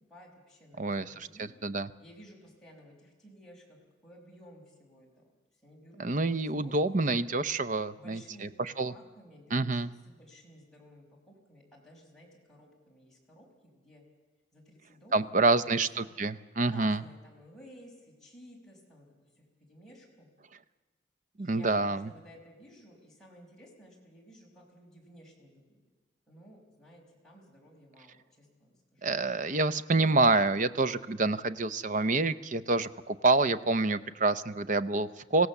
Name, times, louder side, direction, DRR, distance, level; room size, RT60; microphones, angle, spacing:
voice 1, 0.1-1.5 2.0-5.2 5.5-7.0 7.9-8.5 8.9-14.0 14.5-16.1 16.6-20.3 21.4-25.8 26.3-29.1, equal, 5° left, -4 dB, 5.4 m, -55 dB
voice 2, 6.0-8.5 8.8-8.9 9.5-9.9 15.1-17.0 21.4-22.1 29.0-35.5, right 3 dB, 45° right, 13 dB, 0.7 m, -27 dB
26.0 x 16.5 x 7.1 m, 1.3 s
head